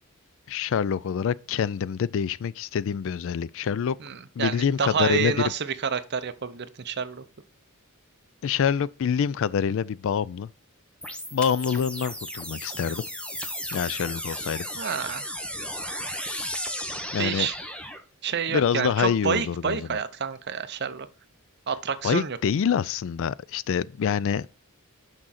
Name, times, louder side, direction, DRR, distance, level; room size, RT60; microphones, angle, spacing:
voice 1, 0.5-4.0 4.4-5.3 8.4-10.5 11.3-13.0 13.7-14.7 17.1-17.5 18.5-19.8 22.0-24.5, left 7 dB, 60° left, 0.3 m, -26 dB
voice 2, 4.0-7.2 14.8-15.3 17.2-17.6 18.2-21.1 21.7-22.4, right 6 dB, 50° right, 0.7 m, -28 dB
sound 1, 11.0-18.0, equal, 5° left, 0.8 m, -35 dB
6.2 x 6.1 x 4.1 m
head